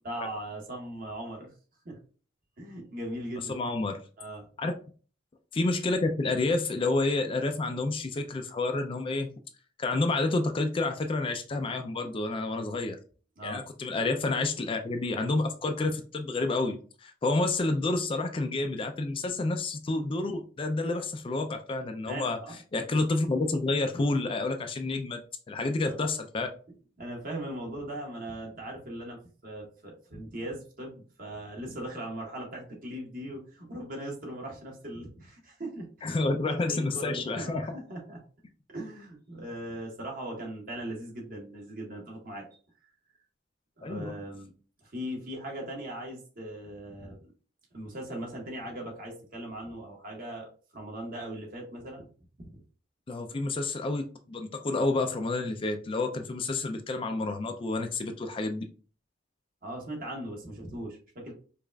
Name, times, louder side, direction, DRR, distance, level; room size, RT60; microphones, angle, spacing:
voice 1, 0.0-1.5 1.8-2.0 2.6-3.5 4.2-4.5 12.6-12.8 13.4-13.6 22.1-22.6 25.8-26.1 27.0-36.2 36.4-38.2 38.7-42.4 43.8-44.5 44.8-47.3 47.7-50.5 50.7-52.1 52.4-52.6 59.6-61.3, right 1 dB, 45° right, 0 dB, 1.3 m, -39 dB
voice 2, 3.5-4.0 4.6-4.7 5.5-9.3 9.8-13.0 13.4-22.4 22.7-25.2 25.5-26.5 36.0-37.7 43.8-44.1 53.1-58.6, left 2 dB, 25° left, 6 dB, 0.3 m, -29 dB
5.0 x 2.4 x 2.2 m, 0.39 s
head